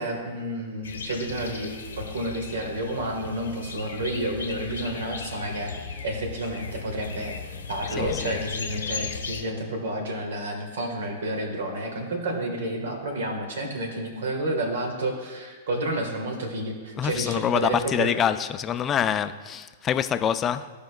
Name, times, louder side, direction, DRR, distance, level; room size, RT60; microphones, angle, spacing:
voice 1, 0.0-1.7 2.0-5.7 6.0-7.3 7.7-18.1, right 1 dB, 70° right, 3 dB, 1.4 m, -30 dB
sound 1, 0.8-9.4, left 5 dB, 80° left, 0.8 m, -36 dB
voice 2, 8.0-8.4 17.0-20.7, left 8 dB, 30° left, 11 dB, 0.4 m, -26 dB
13.5 x 5.1 x 2.2 m, 1.4 s
hypercardioid pair, 105°, 0 cm